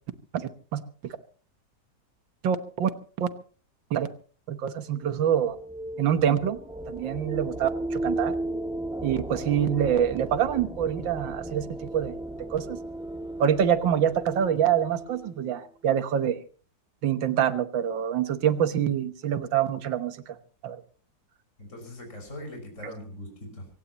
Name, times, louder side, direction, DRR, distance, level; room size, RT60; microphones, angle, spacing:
voice 1, 0.3-0.8 2.4-2.9 3.2-3.3 3.9-4.1 4.5-5.6 6.0-6.6 6.9-8.4 9.0-12.2 12.5-12.8 13.4-16.4 17.0-20.4 20.6-20.8, right 9 dB, 85° right, 10 dB, 1.9 m, -25 dB
sound 1, 4.9-15.5, right 1 dB, ahead, 1.5 m, -35 dB
voice 2, 21.6-23.7, left 1 dB, 40° left, 2 dB, 6.1 m, -41 dB
25.5 x 16.5 x 2.9 m, 0.40 s
omnidirectional pair, 2.0 m